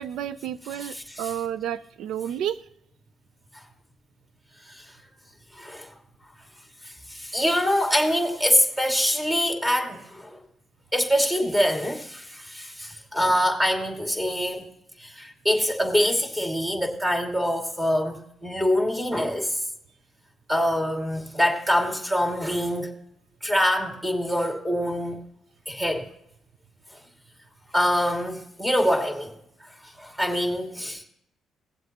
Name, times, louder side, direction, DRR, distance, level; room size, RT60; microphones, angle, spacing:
voice 1, 0.0-2.6, right 10 dB, 80° right, 0.4 m, -31 dB
voice 2, 0.8-1.3 4.7-4.9 5.6-5.9 6.8-10.4 10.9-14.6 15.0-19.6 20.5-22.9 23.4-25.2 25.7-26.1 27.7-29.4 30.0-31.0, equal, 10° right, 2.5 m, -25 dB
18.5 x 7.7 x 3.0 m
cardioid pair, 90°, 0 cm